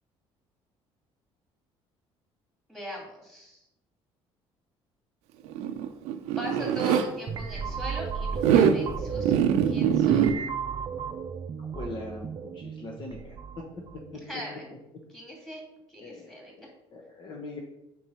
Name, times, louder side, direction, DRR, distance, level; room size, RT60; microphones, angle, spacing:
voice 1, 2.7-3.6 6.4-9.4 9.7-10.3 14.1-14.7 15.1-15.6 15.9-16.5, left 1 dB, 5° left, -1 dB, 2.3 m, -40 dB
Zipper (clothing), 5.5-7.1 8.3-8.8 9.2-10.3, right 8 dB, 90° right, 0.6 m, -23 dB
sound 1, 7.3-14.2, right 6 dB, 40° right, 0.5 m, -34 dB
voice 2, 11.6-13.4 14.1-14.2 16.0-16.3 16.6-17.6, left 2 dB, 45° left, 1 dB, 1.0 m, -41 dB
4.6 x 4.6 x 5.5 m, 0.90 s
cardioid pair, 110°, 11 cm